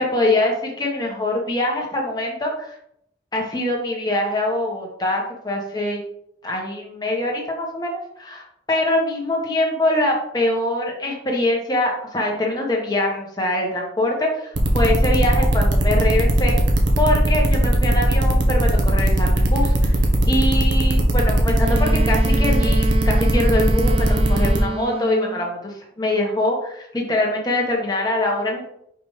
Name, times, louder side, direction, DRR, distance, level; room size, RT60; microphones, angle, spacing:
voice 1, 0.0-2.7 3.3-6.0 6.4-8.4 8.7-16.6 17.0-20.0 20.3-28.6, left 1 dB, 20° left, -1 dB, 1.4 m, -23 dB
sound 1, 14.6-24.6, right 1 dB, 85° right, 1.2 m, -19 dB
Wind instrument woodwind instrument, 21.6-25.5, right 3 dB, 30° right, 0.4 m, -28 dB
5.8 x 5.2 x 3.3 m, 0.73 s
head